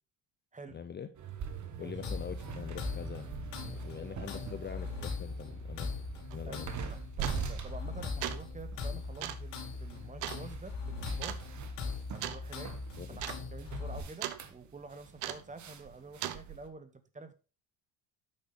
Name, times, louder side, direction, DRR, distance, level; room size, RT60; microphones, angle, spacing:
voice 1, 0.7-1.1 1.8-3.3 3.7-5.9 6.3-6.7 13.0-13.2, left 7 dB, 25° left, 9 dB, 0.6 m, -43 dB
sound 1, 1.2-16.7, right 6 dB, 40° right, 1.2 m, -44 dB
sound 2, 2.0-14.0, left 4 dB, 65° left, 2.8 m, -40 dB
sound 3, 6.3-6.4 7.2-7.6 8.0-8.5 9.2-9.5 10.2-10.4 11.2-11.4 12.2-12.4 12.7-12.8 13.1-13.4 13.7-14.4 15.2-15.5 16.2-16.4, right 13 dB, 85° right, 0.9 m, -38 dB
voice 2, 6.9-11.4 12.1-12.7 13.1-13.2 13.5-17.3, right 3 dB, 15° right, 11 dB, 1.0 m, -48 dB
8.7 x 6.1 x 3.8 m, 0.34 s
cardioid pair, 110°, 46 cm